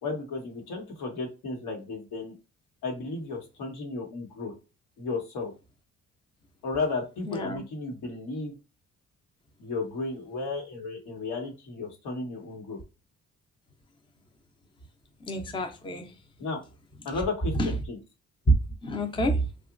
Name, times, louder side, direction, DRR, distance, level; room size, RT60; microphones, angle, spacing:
voice 1, 0.0-2.3 2.8-4.5 5.0-5.5 6.6-8.5 9.6-12.8 16.4-16.6 17.0-18.0, left 3 dB, 85° left, 1.1 m, -33 dB
voice 2, 7.3-7.6 15.3-16.2 17.6-17.7 18.8-19.5, equal, 15° left, 0.5 m, -29 dB
2.8 x 2.3 x 2.4 m
cardioid pair, 90°, 30 cm